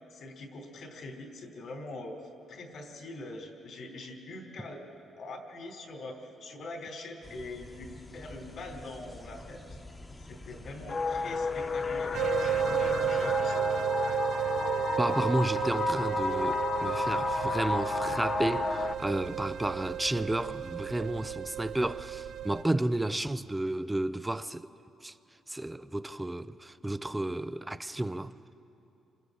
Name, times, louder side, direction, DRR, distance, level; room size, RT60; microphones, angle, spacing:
voice 1, 0.1-2.2 2.5-4.9 5.2-9.6 10.2-13.7, left 2 dB, 65° left, 3.4 m, -43 dB
sound 1, 7.2-13.4, left 1 dB, 25° left, 1.4 m, -48 dB
sound 2, 10.9-18.9, left 4 dB, 40° left, 0.9 m, -31 dB
sound 3, 12.1-22.6, right 10 dB, 70° right, 0.6 m, -33 dB
voice 2, 15.0-24.7 25.0-25.1 25.5-28.3, right 1 dB, 10° right, 0.6 m, -32 dB
28.5 x 26.0 x 4.0 m
cardioid pair, 90°, 0 cm